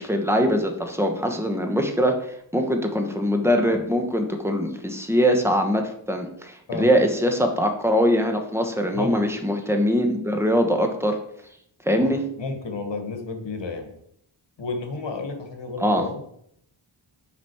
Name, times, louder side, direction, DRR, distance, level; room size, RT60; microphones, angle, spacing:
voice 1, 0.0-5.8 6.1-11.2 11.8-12.2 15.8-16.0, equal, 5° right, 4 dB, 1.3 m, -22 dB
voice 2, 12.0-13.9 14.6-16.2, left 3 dB, 65° left, 5 dB, 1.5 m, -32 dB
5.9 x 5.3 x 4.7 m, 0.71 s
cardioid pair, 50°, 47 cm